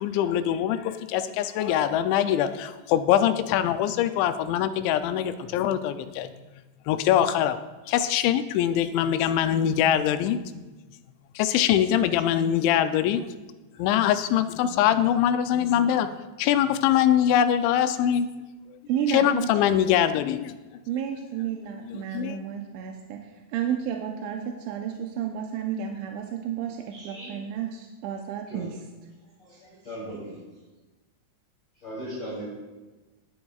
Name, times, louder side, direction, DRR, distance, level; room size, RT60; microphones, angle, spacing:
voice 1, 0.0-6.3 6.9-7.6 7.9-10.7 11.4-13.3 13.8-18.3 19.1-20.6 21.8-22.4, left 10 dB, 85° left, 10 dB, 2.8 m, -23 dB
voice 2, 18.9-19.8 20.9-28.8, right 8 dB, 85° right, 2 dB, 3.1 m, -31 dB
voice 3, 26.9-27.3 28.5-28.6 29.4-30.4 31.8-32.4, equal, 30° left, -8 dB, 3.3 m, -38 dB
18.5 x 9.8 x 2.4 m, 1.2 s
omnidirectional pair, 5.3 m